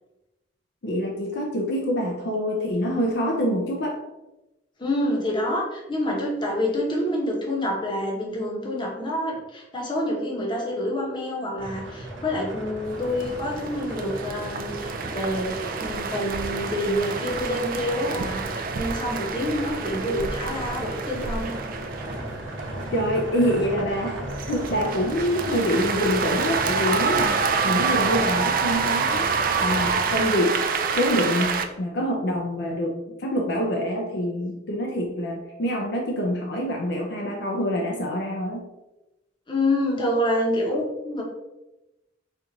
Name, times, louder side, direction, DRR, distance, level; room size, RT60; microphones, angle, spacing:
voice 1, 0.8-4.0 22.9-29.3 29.6-30.6 30.9-38.6, equal, 60° left, 1 dB, 0.5 m, -26 dB
voice 2, 4.8-21.6 39.5-41.2, left 1 dB, 25° left, -2 dB, 0.9 m, -27 dB
sound 1, 11.6-30.2, right 1 dB, 80° right, 0.9 m, -36 dB
sound 2, 12.9-31.6, right 5 dB, 45° right, 0.3 m, -28 dB
4.3 x 2.5 x 3.8 m, 0.98 s
head